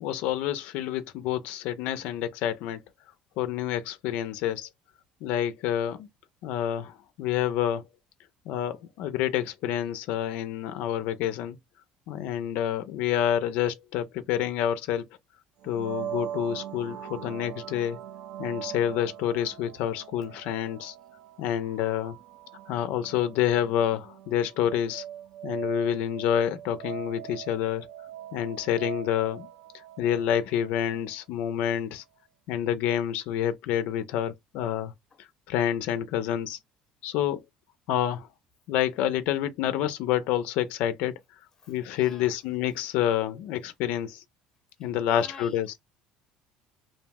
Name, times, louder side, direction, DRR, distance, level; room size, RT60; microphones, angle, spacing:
voice 1, 0.0-2.8 3.4-4.7 5.2-6.1 6.4-7.8 8.5-11.6 12.1-15.0 15.6-18.0 18.4-20.9 21.4-22.1 22.7-25.0 25.4-27.9 28.3-29.5 30.0-32.0 32.5-34.9 35.2-36.6 37.0-37.4 37.9-38.3 38.7-41.1 41.7-44.2 44.8-45.8, left 10 dB, 70° left, 0.4 m, -28 dB
sound 1, 15.6-31.3, right 11 dB, 70° right, 0.4 m, -41 dB
voice 2, 41.6-42.4 42.8-42.9 44.8-45.6, left 3 dB, 20° left, 0.7 m, -49 dB
2.6 x 2.0 x 3.3 m
cardioid pair, 145°, 3 cm